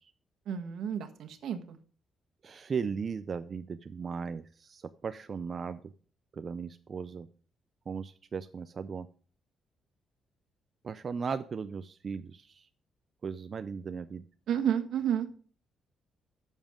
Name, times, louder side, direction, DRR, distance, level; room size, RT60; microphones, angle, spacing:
voice 1, 0.5-1.8 14.5-15.3, right 9 dB, 70° right, 6 dB, 1.4 m, -31 dB
voice 2, 2.4-5.8 6.3-7.3 7.9-9.1 10.8-12.6 13.2-14.2, right 5 dB, 35° right, 10 dB, 0.5 m, -37 dB
12.5 x 7.2 x 3.7 m, 0.41 s
cardioid pair, 150°, 0 cm